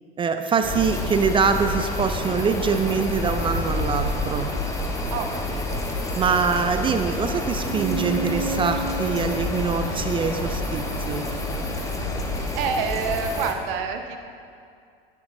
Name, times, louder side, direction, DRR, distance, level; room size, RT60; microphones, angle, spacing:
voice 1, 0.2-4.5 6.2-11.3, right 5 dB, 15° right, 7 dB, 0.4 m, -24 dB
sound 1, 0.6-13.5, left 2 dB, 10° left, 1.0 m, -28 dB
voice 2, 5.1-5.9 12.5-14.2, right 6 dB, 55° right, 6 dB, 0.8 m, -28 dB
sound 2, 7.6-12.4, right 3 dB, 35° right, 1.4 m, -33 dB
9.7 x 9.5 x 2.6 m, 2.3 s
hypercardioid pair, 85°, 30 cm